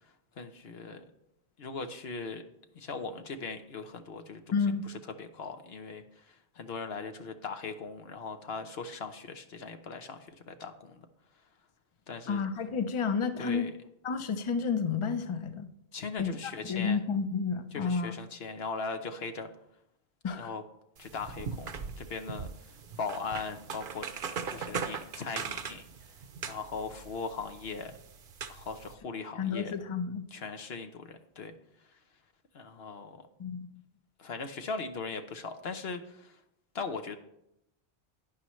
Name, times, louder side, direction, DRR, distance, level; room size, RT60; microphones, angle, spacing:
voice 1, 0.4-1.0 1.6-2.4 2.7-4.4 4.9-5.0 5.2-6.0 6.6-11.0 12.1-12.4 13.4-13.7 15.9-17.0 17.7-19.5 20.4-20.6 21.0-21.7 22.0-22.5 23.0-24.1 24.5-25.8 26.4-28.0 28.5-29.8 30.3-31.5 32.5-33.2 34.2-36.3 36.7-37.2, left 4 dB, 70° left, 7 dB, 1.1 m, -39 dB
voice 2, 4.5-4.8 12.3-13.7 14.0-15.7 16.2-16.4 16.7-18.1 20.2-20.5 29.4-30.2 33.4-33.7, left 5 dB, 35° left, 10 dB, 0.6 m, -30 dB
sound 1, 21.0-28.9, right 6 dB, 55° right, 0.9 m, -40 dB
11.5 x 10.0 x 3.1 m, 0.79 s
omnidirectional pair, 1.1 m